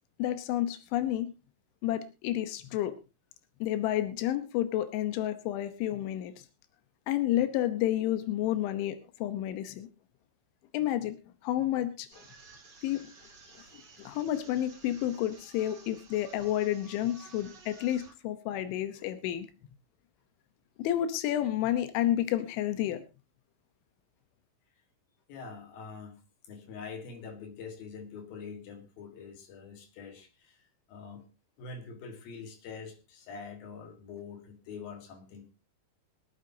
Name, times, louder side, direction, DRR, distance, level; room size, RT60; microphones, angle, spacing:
voice 1, 0.2-1.3 1.8-2.9 3.6-6.3 7.1-9.9 10.7-11.2 11.4-12.2 12.8-13.0 14.0-19.5 20.8-23.0, left 12 dB, 90° left, 10 dB, 3.4 m, -30 dB
sound 1, 12.1-18.1, right 4 dB, 35° right, 1.9 m, -54 dB
voice 2, 25.3-30.6 30.9-31.2 31.6-35.5, left 5 dB, 60° left, 5 dB, 3.1 m, -45 dB
24.5 x 9.4 x 2.8 m, 0.28 s
omnidirectional pair, 5.3 m